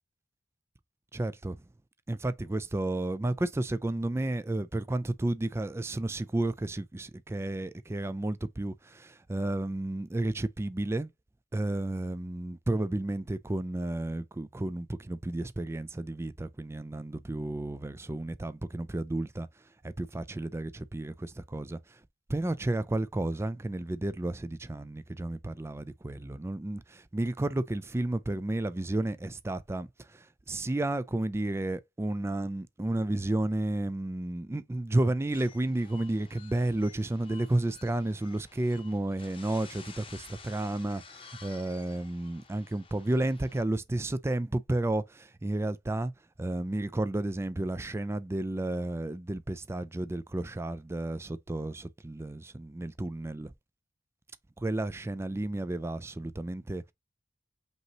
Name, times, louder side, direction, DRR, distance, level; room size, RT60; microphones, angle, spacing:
voice 1, 1.1-1.6 2.1-11.1 11.5-19.5 19.8-22.0 22.3-46.1 46.4-53.5 54.6-56.9, right 1 dB, 15° right, 0.4 m, -32 dB
sound 1, 35.3-43.6, left 5 dB, 30° left, 0.8 m, -52 dB
5.3 x 3.0 x 2.9 m
head